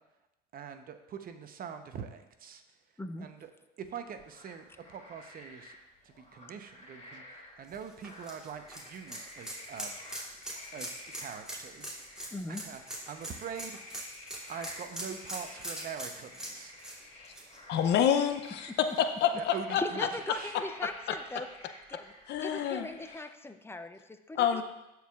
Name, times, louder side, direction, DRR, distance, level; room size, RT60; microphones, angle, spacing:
voice 1, 0.5-2.6 3.2-3.5 3.8-5.8 6.0-9.9 10.3-10.4 10.7-12.2 12.5-14.0 14.5-16.7 19.3-20.6, right 7 dB, 50° right, 8 dB, 0.8 m, -44 dB
sound 1, 3.9-23.2, left 1 dB, 40° left, 2.8 m, -52 dB
sound 2, 7.7-18.4 18.8-18.9 20.4-20.5, right 1 dB, 5° right, 2.6 m, -42 dB
voice 2, 12.3-12.6 19.8-21.5 21.9-22.1 22.4-24.6, left 2 dB, 10° left, 8 dB, 0.6 m, -39 dB
voice 3, 17.7-18.7 19.0-19.8 22.3-22.9 24.3-24.6, left 9 dB, 60° left, 8 dB, 0.6 m, -27 dB
13.5 x 4.8 x 2.4 m, 0.94 s
supercardioid pair, 75°, 20 cm